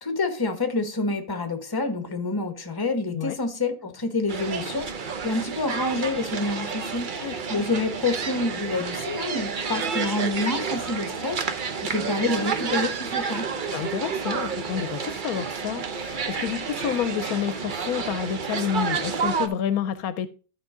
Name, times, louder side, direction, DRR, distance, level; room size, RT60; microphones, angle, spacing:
voice 1, 0.0-4.9 5.2-7.1 7.5-11.4 11.8-13.5, left 2 dB, 15° left, 1.1 m, -27 dB
sound 1, 4.3-19.5, right 5 dB, 45° right, 0.7 m, -30 dB
voice 2, 7.2-7.7 13.7-20.3, left 9 dB, 75° left, 1.1 m, -29 dB
13.0 x 4.9 x 3.7 m
omnidirectional pair, 1.6 m